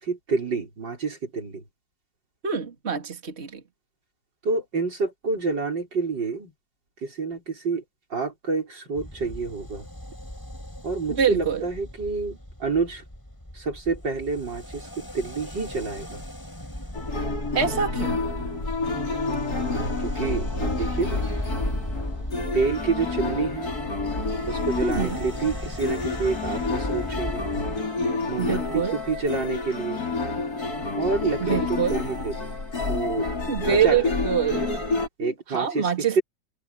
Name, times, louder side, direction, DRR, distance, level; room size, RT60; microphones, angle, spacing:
voice 1, 0.0-1.6 4.4-6.5 7.0-7.8 8.1-9.9 10.8-13.0 13.5-16.2 20.0-21.3 22.5-23.7 24.5-27.5 28.3-30.0 31.0-32.5 32.9-33.3 33.6-34.1 35.2-36.2, right 4 dB, 90° right, 6.6 m, -28 dB
voice 2, 2.4-3.6 11.1-11.6 17.5-18.2 24.8-25.2 28.4-28.9 31.4-32.0 33.5-34.7 35.2-36.2, right 7 dB, 35° right, 2.7 m, -25 dB
sound 1, 8.9-27.8, left 1 dB, 10° left, 5.0 m, -36 dB
sound 2, 16.9-35.1, left 3 dB, 60° left, 5.1 m, -29 dB
omnidirectional pair, 1.9 m